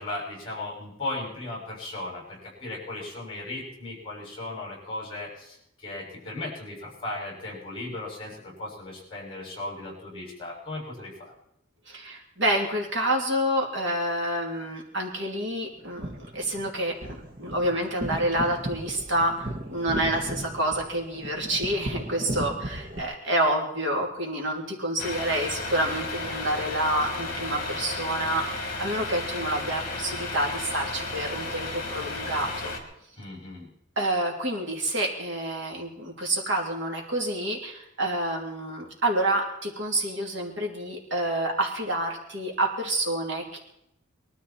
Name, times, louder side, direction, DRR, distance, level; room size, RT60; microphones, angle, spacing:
voice 1, 0.0-11.3 33.1-33.7, left 2 dB, 25° left, -2 dB, 7.1 m, -36 dB
voice 2, 11.9-32.7 34.0-43.6, right 1 dB, 60° right, 0 dB, 3.2 m, -28 dB
sound 1, 15.8-23.0, right 1 dB, 45° right, 1.6 m, -36 dB
Truck, 25.0-32.8, left 2 dB, 45° left, 3.5 m, -33 dB
22.5 x 13.5 x 4.4 m, 0.80 s
head